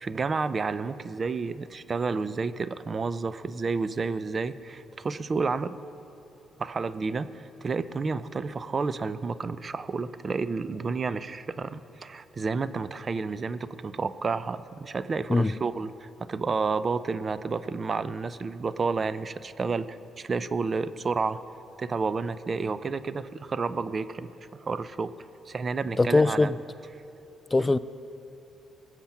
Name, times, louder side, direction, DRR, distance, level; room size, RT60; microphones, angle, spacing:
voice 1, 0.0-5.8 6.6-21.4 21.8-24.3 24.6-25.1 25.5-26.5, right 4 dB, 35° right, 14 dB, 0.5 m, -30 dB
voice 2, 26.0-26.5 27.5-27.8, left 2 dB, 20° left, 15 dB, 0.3 m, -21 dB
20.5 x 7.4 x 5.9 m, 3.0 s
cardioid pair, 90°, 0 cm